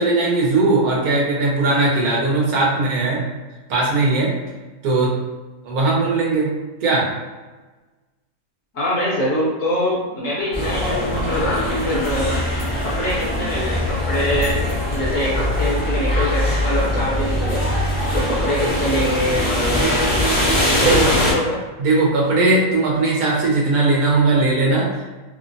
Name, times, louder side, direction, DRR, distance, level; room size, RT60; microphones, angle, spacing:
voice 1, 0.0-3.2 3.7-4.3 4.8-5.2 5.6-6.5 6.8-7.1 20.8-21.1 21.8-25.1, right 3 dB, 70° right, -3 dB, 1.1 m, -18 dB
voice 2, 8.7-12.4 12.8-14.6 14.9-17.6 18.1-20.0 20.8-21.6, left 1 dB, 60° left, -6 dB, 0.9 m, -24 dB
sound 1, 10.5-21.3, left 1 dB, 30° left, 0.4 m, -21 dB
3.0 x 2.0 x 2.5 m, 1.2 s
omnidirectional pair, 1.7 m